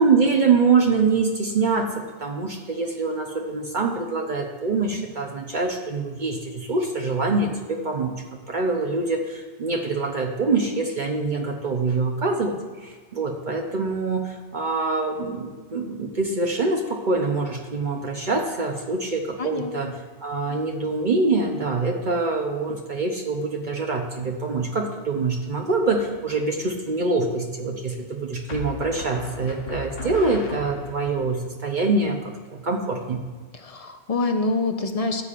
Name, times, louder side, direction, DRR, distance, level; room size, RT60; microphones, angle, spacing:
voice 1, 0.0-1.9 2.2-19.9 20.2-33.2, right 3 dB, 50° right, 1 dB, 0.9 m, -25 dB
voice 2, 19.4-19.9 33.5-35.2, left 3 dB, 40° left, 6 dB, 0.7 m, -26 dB
sound 1, 25.8-26.4 28.5-31.2, left 1 dB, 85° left, 1.3 m, -36 dB
13.5 x 8.4 x 2.5 m, 1.4 s
omnidirectional pair, 1.1 m